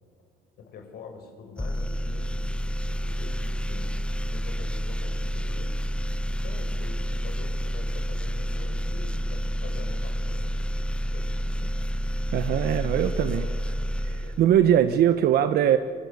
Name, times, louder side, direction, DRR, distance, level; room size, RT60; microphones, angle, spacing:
voice 1, 0.6-3.9 4.3-5.7 6.3-10.6 11.1-11.9 12.7-13.8 14.1-14.5, left 5 dB, 65° left, 5 dB, 5.1 m, -45 dB
sound 1, 1.6-15.0, equal, 5° left, 0.6 m, -29 dB
voice 2, 12.3-13.4 14.0-15.8, right 10 dB, 65° right, 10 dB, 1.0 m, -21 dB
25.5 x 23.0 x 8.3 m, 2.2 s
cardioid pair, 110°, 17 cm